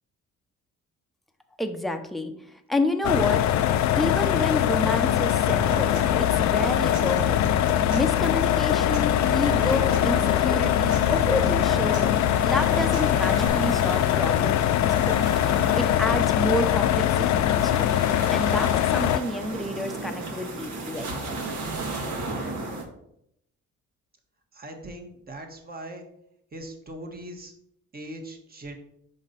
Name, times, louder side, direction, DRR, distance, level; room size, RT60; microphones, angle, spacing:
voice 1, 1.6-3.4 3.9-7.4 7.7-12.2 12.4-15.2 15.4-17.9 18.3-21.4, left 1 dB, ahead, 5 dB, 0.7 m, -29 dB
sound 1, 3.0-19.2, left 11 dB, 65° left, 0.5 m, -22 dB
Human voice / Acoustic guitar / Percussion, 5.5-13.5, right 5 dB, 90° right, 0.9 m, -38 dB
sound 2, 9.2-22.8, right 2 dB, 75° right, 1.6 m, -36 dB
voice 2, 24.5-26.0 26.5-27.5 27.9-28.8, right 1 dB, 30° right, 4 dB, 1.4 m, -40 dB
5.2 x 5.2 x 4.1 m, 0.73 s
cardioid pair, 90°, 30 cm